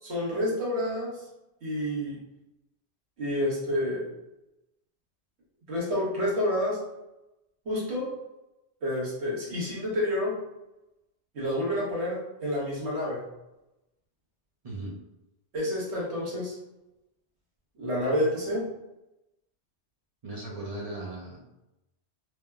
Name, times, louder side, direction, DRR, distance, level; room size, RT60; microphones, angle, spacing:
voice 1, 0.0-1.2 1.6-2.2 3.2-4.1 5.7-6.8 7.6-8.1 8.8-10.3 11.3-13.2 15.5-16.5 17.8-18.6, left 1 dB, 70° right, -5 dB, 1.2 m, -29 dB
voice 2, 14.6-15.0 20.2-21.4, right 2 dB, 50° right, -4 dB, 0.5 m, -37 dB
3.2 x 2.1 x 2.2 m, 0.93 s
omnidirectional pair, 1.2 m